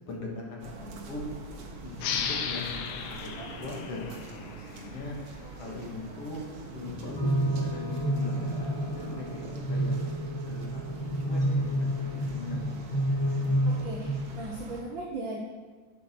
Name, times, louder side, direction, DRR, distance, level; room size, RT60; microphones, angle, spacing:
voice 1, 0.1-1.2 1.8-5.2 5.5-6.4 6.7-9.9 10.4-13.0, left 3 dB, 55° left, -1 dB, 2.5 m, -40 dB
sound 1, 0.6-14.8, right 4 dB, 55° right, 1.9 m, -44 dB
sound 2, 2.0-5.2, left 7 dB, 70° left, 1.5 m, -35 dB
sound 3, 7.0-14.2, equal, 10° left, 2.6 m, -29 dB
voice 2, 13.3-15.4, right 2 dB, 75° right, -1 dB, 1.1 m, -38 dB
8.9 x 8.0 x 6.1 m, 1.5 s
omnidirectional pair, 3.6 m